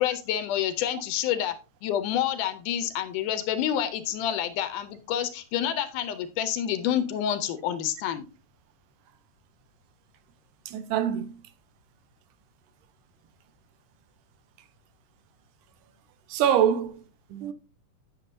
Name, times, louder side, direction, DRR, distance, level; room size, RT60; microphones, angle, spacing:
voice 1, 0.0-1.5 1.8-8.3, left 10 dB, 85° left, 2.1 m, -28 dB
voice 2, 10.7-11.4 16.3-17.0 17.3-17.5, right 9 dB, 80° right, 2.4 m, -25 dB
8.4 x 7.2 x 2.7 m
omnidirectional pair, 3.8 m